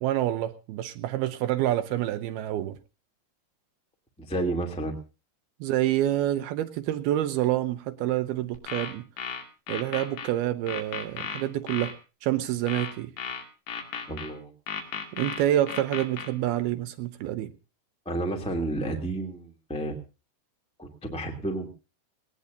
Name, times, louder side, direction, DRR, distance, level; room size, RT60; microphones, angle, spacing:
voice 1, 0.0-2.8 5.6-9.0 9.7-11.9 12.2-13.1 15.1-17.5, right 13 dB, 75° right, 11 dB, 2.5 m, -27 dB
voice 2, 4.2-4.9 14.1-14.5 18.0-20.0 20.8-21.7, right 2 dB, 5° left, 2 dB, 1.2 m, -31 dB
sound 1, 8.5-10.3 10.7-11.9 12.7-14.3 14.7-16.3, left 6 dB, 80° left, 4.5 m, -35 dB
19.5 x 19.0 x 2.6 m, 0.32 s
omnidirectional pair, 4.9 m